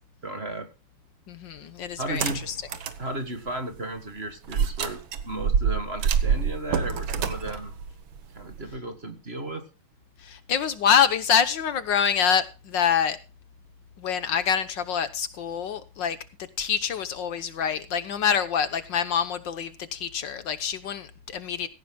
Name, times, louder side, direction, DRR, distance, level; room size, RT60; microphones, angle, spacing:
voice 1, 0.2-0.7 2.0-2.4 3.0-7.7 8.3-9.7, right 1 dB, 30° right, 1.9 m, -34 dB
voice 2, 1.3-2.2 2.5-2.6 10.2-13.2 14.0-16.2 16.6-21.7, left 7 dB, 65° left, 1.6 m, -26 dB
sound 1, 2.0-3.0 3.5-3.6 4.5-8.8, right 7 dB, 75° right, 2.0 m, -26 dB
17.0 x 15.0 x 2.3 m
omnidirectional pair, 2.2 m